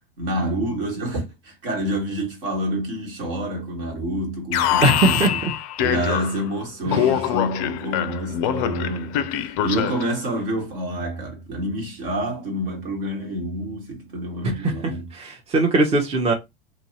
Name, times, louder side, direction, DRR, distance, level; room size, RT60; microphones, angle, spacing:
voice 1, 0.2-5.4 5.8-15.1, right 1 dB, 60° right, 1.7 m, -28 dB
Alarm, 4.5-6.5 6.9-10.2, left 11 dB, 40° left, 0.4 m, -24 dB
voice 2, 4.8-5.5 6.9-7.2 14.6-14.7 15.1-16.3, right 2 dB, 20° right, 0.6 m, -20 dB
2.9 x 2.6 x 2.9 m
figure-of-eight pair, 90°, 30 cm